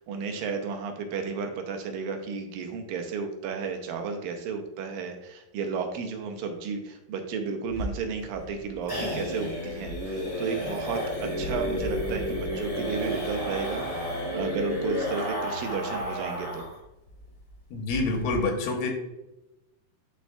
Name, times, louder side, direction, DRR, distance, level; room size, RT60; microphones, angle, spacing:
voice 1, 0.0-16.6, right 5 dB, 80° right, 5 dB, 2.4 m, -33 dB
sound 1, 7.7-16.8 17.1-17.2 17.5-17.6 17.9-18.4, equal, 30° left, 1.7 m, -32 dB
voice 2, 17.7-18.9, left 3 dB, 80° left, 2 dB, 2.6 m, -27 dB
11.0 x 4.6 x 2.3 m, 0.95 s
omnidirectional pair, 4.2 m